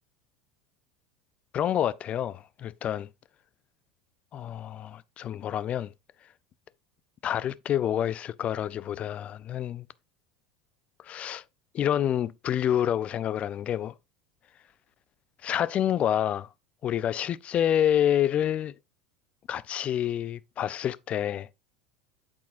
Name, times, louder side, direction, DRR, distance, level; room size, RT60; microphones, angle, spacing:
voice 1, 1.5-3.1 4.3-5.9 7.2-9.9 11.0-11.4 11.7-13.9 15.4-16.5 16.8-18.7 19.5-21.5, left 10 dB, 40° left, 0.4 m, -28 dB
8.3 x 6.2 x 2.5 m
hypercardioid pair, 85°, 3 cm